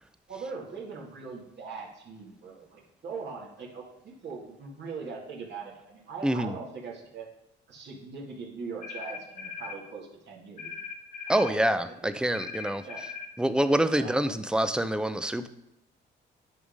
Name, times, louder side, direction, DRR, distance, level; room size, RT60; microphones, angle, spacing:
voice 1, 0.3-7.3 7.7-10.7 11.3-11.6 12.0-12.1 12.8-13.1 13.9-14.2, right 5 dB, 60° right, -3 dB, 2.1 m, -41 dB
voice 2, 6.2-6.5 11.3-12.8 13.4-15.5, right 1 dB, 5° right, 11 dB, 0.5 m, -26 dB
sound 1, 8.8-9.8 10.6-11.6 12.3-13.3, left 6 dB, 40° left, 1.2 m, -39 dB
10.5 x 3.6 x 5.2 m, 0.87 s
cardioid pair, 90°, 20 cm